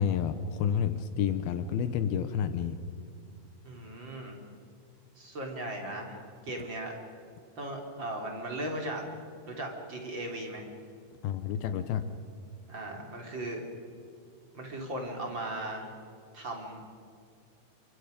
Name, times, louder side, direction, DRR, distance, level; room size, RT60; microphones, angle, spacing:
voice 1, 0.0-2.8 11.2-12.1, left 8 dB, 75° left, 11 dB, 2.5 m, -29 dB
voice 2, 3.6-4.4 5.2-6.9 7.6-9.0 9.5-10.7 12.7-13.6 14.5-15.9 16.3-16.8, right 1 dB, 30° right, 1 dB, 3.1 m, -37 dB
29.0 x 24.0 x 5.2 m, 2.4 s
omnidirectional pair, 4.9 m